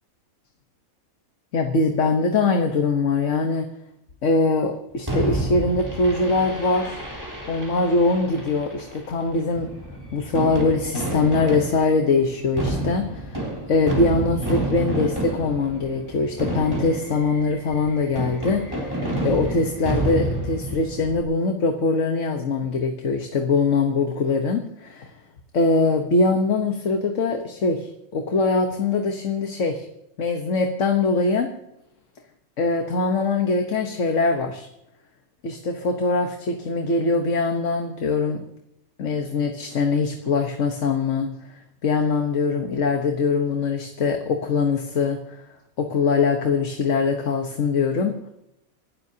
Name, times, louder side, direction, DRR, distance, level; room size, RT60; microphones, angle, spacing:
voice 1, 1.5-3.7 4.2-7.0 7.5-9.7 10.1-13.4 13.7-19.0 19.2-25.1 25.5-29.9 30.2-31.5 32.6-34.7 35.4-38.4 39.0-45.4 45.8-48.3, left 3 dB, 60° left, 4 dB, 1.5 m, -22 dB
Fireworks, 5.1-21.2, right 1 dB, 15° right, 3.7 m, -29 dB
30.0 x 12.5 x 2.8 m, 0.81 s
omnidirectional pair, 1.5 m